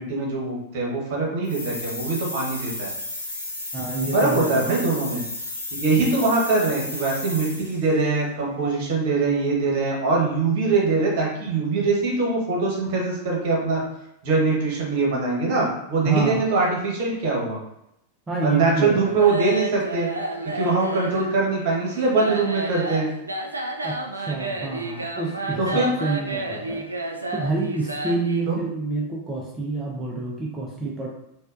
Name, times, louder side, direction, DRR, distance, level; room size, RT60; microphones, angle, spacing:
voice 1, 0.0-2.9 4.1-5.2 5.7-13.8 14.2-17.6 18.4-20.1 20.5-23.1 25.6-25.9 28.5-28.6, right 3 dB, 50° right, -2 dB, 1.2 m, -22 dB
sound 1, 1.4-7.9, left 2 dB, 85° left, 1.0 m, -33 dB
voice 2, 3.7-4.8 16.0-16.4 18.3-19.2 23.8-26.9 27.3-31.1, right 3 dB, 15° right, -3 dB, 0.6 m, -28 dB
sound 2, 19.0-28.4, right 2 dB, 80° right, 0.4 m, -31 dB
4.2 x 2.3 x 2.5 m, 0.81 s
figure-of-eight pair, 90°, 0 cm